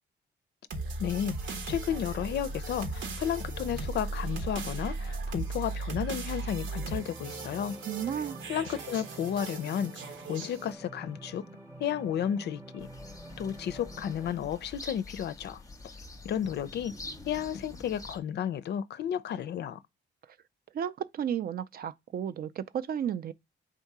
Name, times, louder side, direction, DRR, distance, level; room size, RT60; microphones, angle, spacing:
sound 1, 0.7-10.7, right 3 dB, 70° right, 0.9 m, -37 dB
voice 1, 1.0-7.8 8.5-9.9 10.3-11.4 11.8-12.9 13.4-15.6 16.2-17.0 17.3-19.8, left 9 dB, 60° left, 0.4 m, -32 dB
sound 2, 6.8-14.4, right 1 dB, 15° right, 0.8 m, -47 dB
voice 2, 7.9-8.4 20.7-23.3, right 9 dB, 50° right, 0.4 m, -33 dB
sound 3, 12.8-18.2, left 2 dB, 15° left, 0.6 m, -46 dB
3.6 x 2.7 x 4.6 m
cardioid pair, 90°, 20 cm